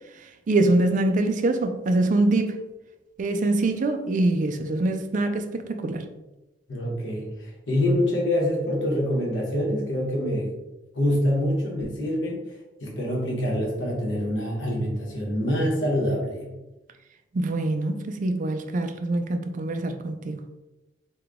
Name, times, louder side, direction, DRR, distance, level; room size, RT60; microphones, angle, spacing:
voice 1, 0.2-2.6 3.2-6.0 17.3-20.4, right 2 dB, 45° right, 0.4 m, -24 dB
voice 2, 6.7-10.5 10.9-12.4 12.8-16.5, left 1 dB, 85° left, 1.0 m, -25 dB
3.7 x 2.2 x 3.4 m
head